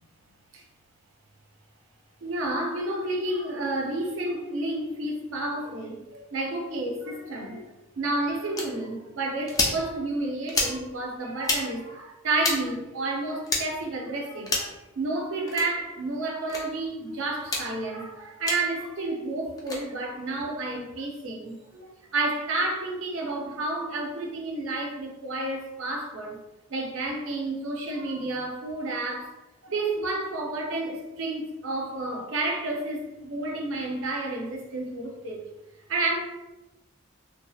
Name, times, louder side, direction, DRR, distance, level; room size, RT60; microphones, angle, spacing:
voice 1, 2.2-7.6 8.0-26.4 26.7-29.3 29.6-35.4 35.9-36.1, right 2 dB, 70° right, 1 dB, 0.5 m, -30 dB
sound 1, 8.6-8.7 9.5-9.8 10.5-10.8 11.4-11.6 12.4-12.6 13.5-13.6 14.4-14.7 15.5-15.7 16.5-16.6 17.4-17.6 18.5-18.6 19.6-19.8, left 2 dB, 15° left, 0.3 m, -27 dB
2.6 x 2.4 x 2.3 m, 1.0 s
head